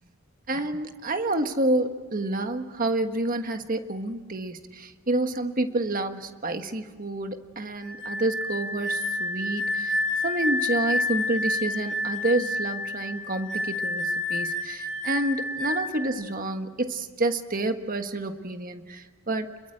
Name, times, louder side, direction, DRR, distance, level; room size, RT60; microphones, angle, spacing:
voice 1, 0.5-19.5, right 2 dB, 40° right, 7 dB, 1.4 m, -29 dB
sound 1, 7.8-16.1, left 2 dB, 5° left, 6.9 m, -29 dB
28.5 x 22.0 x 9.0 m, 1.4 s
head